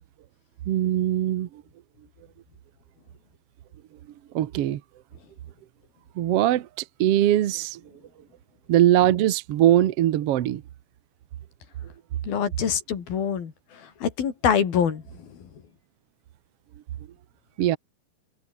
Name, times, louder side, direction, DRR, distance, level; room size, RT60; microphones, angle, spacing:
voice 1, 0.7-1.6 4.3-4.8 6.1-6.7 7.0-7.8 8.7-10.6 17.6-17.8, right 12 dB, 80° right, 1.3 m, -21 dB
voice 2, 12.2-13.5 14.0-15.3, left 8 dB, 70° left, 4.9 m, -25 dB
omnidirectional pair, 4.4 m